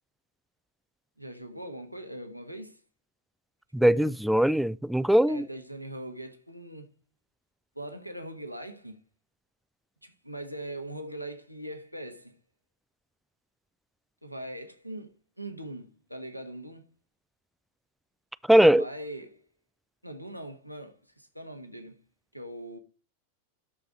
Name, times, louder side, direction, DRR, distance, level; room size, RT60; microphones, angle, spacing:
voice 1, 1.2-2.8 3.8-4.1 5.3-6.9 7.7-9.0 10.0-12.4 14.2-16.9 18.6-19.4 20.0-22.0 22.3-22.8, right 1 dB, 90° right, 1.4 m, -41 dB
voice 2, 3.7-5.4 18.5-18.8, right 1 dB, ahead, 0.4 m, -20 dB
12.5 x 4.7 x 3.9 m
figure-of-eight pair, 90°, 0 cm